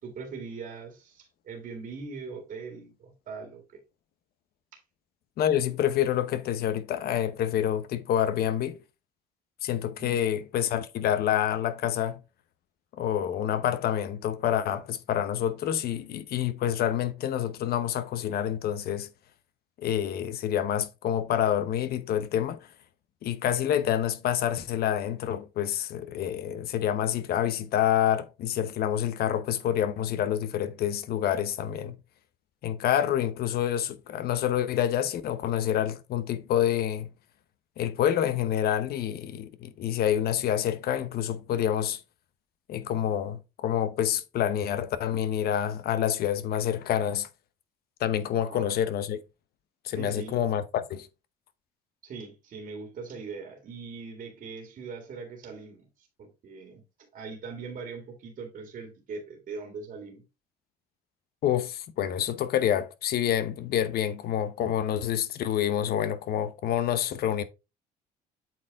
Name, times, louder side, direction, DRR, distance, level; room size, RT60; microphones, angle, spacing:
voice 1, 0.0-3.8 4.7-4.8 10.0-10.2 48.3-48.7 49.9-50.4 52.0-56.8 57.1-60.2, right 4 dB, 55° right, 2.1 m, -41 dB
voice 2, 5.4-8.8 9.6-12.2 13.0-19.1 19.8-22.7 23.2-32.0 32.6-37.1 37.8-42.0 42.7-47.3 48.0-49.2 49.8-51.1 61.4-67.4, left 10 dB, 65° left, 1.0 m, -27 dB
8.2 x 4.5 x 3.6 m
cardioid pair, 110°, 17 cm